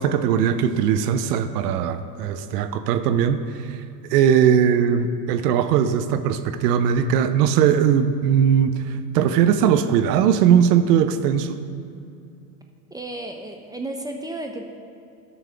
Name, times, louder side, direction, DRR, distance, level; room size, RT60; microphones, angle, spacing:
voice 1, 0.0-3.8 4.1-11.5, right 8 dB, 70° right, 10 dB, 0.7 m, -19 dB
voice 2, 12.9-14.6, right 1 dB, 10° right, 2 dB, 0.3 m, -33 dB
12.5 x 6.2 x 3.4 m, 2.5 s
hypercardioid pair, 85°, 50 cm